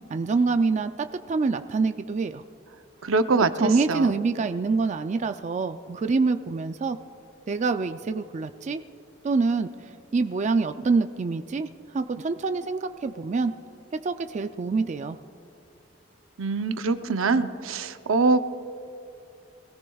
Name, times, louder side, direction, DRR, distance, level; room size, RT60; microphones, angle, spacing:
voice 1, 0.1-2.4 3.6-7.0 7.5-8.8 9.2-11.7 11.9-13.5 14.0-15.2, right 4 dB, 35° right, 9 dB, 0.3 m, -26 dB
voice 2, 3.0-4.1 16.4-18.4, right 3 dB, 85° right, 10 dB, 0.6 m, -23 dB
21.0 x 17.0 x 2.3 m, 2.7 s
head